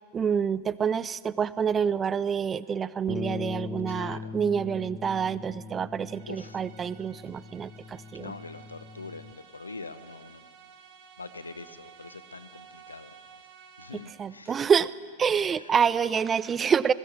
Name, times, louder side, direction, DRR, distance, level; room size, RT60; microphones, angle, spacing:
voice 1, 0.1-8.3 14.2-14.9 15.2-16.9, right 7 dB, 20° right, 19 dB, 0.5 m, -27 dB
Bass guitar, 3.1-9.3, left 5 dB, 20° left, 0.7 m, -40 dB
voice 2, 3.9-4.3 6.3-6.6 8.1-10.5 11.2-13.5 13.8-14.6 15.5-15.7, left 3 dB, 80° left, 14 dB, 0.8 m, -44 dB
sound 1, 6.0-14.5, right 8 dB, 45° right, 1.6 m, -53 dB
20.5 x 17.0 x 7.5 m, 2.1 s
figure-of-eight pair, 90°, 0 cm